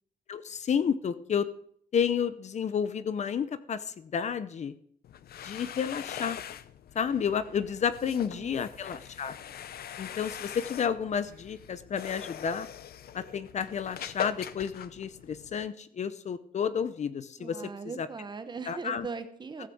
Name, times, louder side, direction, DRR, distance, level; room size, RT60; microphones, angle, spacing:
voice 1, 0.3-1.5 1.9-4.7 5.4-6.4 6.9-9.3 10.0-12.7 13.1-17.6 18.0-18.1 18.7-19.1, left 7 dB, 50° left, 14 dB, 0.7 m, -31 dB
sound 1, 5.0-15.7, left 10 dB, 90° left, 0.7 m, -42 dB
voice 2, 8.0-8.6 17.4-19.7, right 4 dB, 30° right, 10 dB, 1.0 m, -40 dB
14.5 x 6.7 x 7.8 m, 0.63 s
wide cardioid pair, 180°, 15 cm